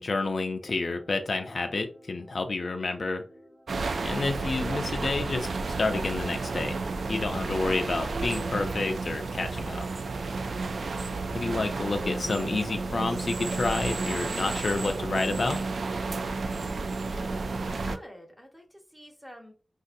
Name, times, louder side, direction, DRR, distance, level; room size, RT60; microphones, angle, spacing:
voice 1, 0.0-3.2 4.0-6.8 7.1-9.8 11.3-15.6, left 3 dB, 65° left, 5 dB, 0.4 m, -29 dB
sound 1, 0.6-7.8 8.2-11.6 11.9-15.5, right 1 dB, 30° right, 1.3 m, -49 dB
sound 2, 3.7-18.0, right 3 dB, 80° right, 0.3 m, -32 dB
voice 2, 10.6-11.0 17.0-19.5, equal, 5° right, 2 dB, 1.0 m, -49 dB
3.9 x 2.5 x 2.6 m, 0.36 s
wide cardioid pair, 70°, 0 cm